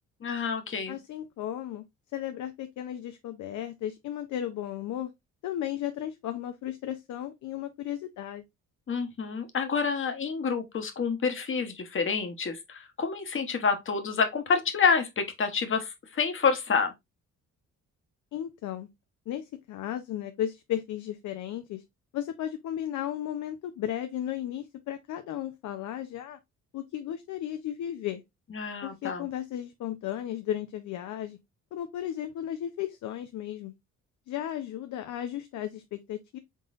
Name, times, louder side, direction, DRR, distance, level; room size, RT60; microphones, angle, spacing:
voice 1, 0.2-1.0 8.9-16.9 28.5-29.3, left 5 dB, 40° left, 1.0 m, -28 dB
voice 2, 0.9-1.8 2.1-5.1 5.4-8.4 18.3-18.9 19.3-21.8 22.1-26.4 26.7-28.2 28.8-31.4 31.7-33.7 34.3-36.4, left 11 dB, 70° left, 0.6 m, -35 dB
3.8 x 3.8 x 2.5 m
cardioid pair, 90°, 30 cm